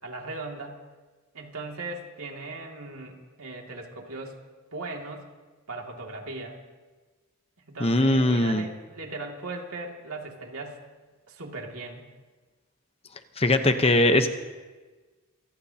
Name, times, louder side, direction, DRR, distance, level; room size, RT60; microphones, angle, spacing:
voice 1, 0.0-0.8 1.3-4.4 4.7-5.3 5.7-6.6 7.7-10.8 11.3-12.1, right 2 dB, 80° right, 1 dB, 2.5 m, -38 dB
voice 2, 7.8-8.6 13.4-14.3, left 1 dB, 25° left, 8 dB, 0.9 m, -20 dB
27.0 x 18.5 x 2.9 m, 1.3 s
head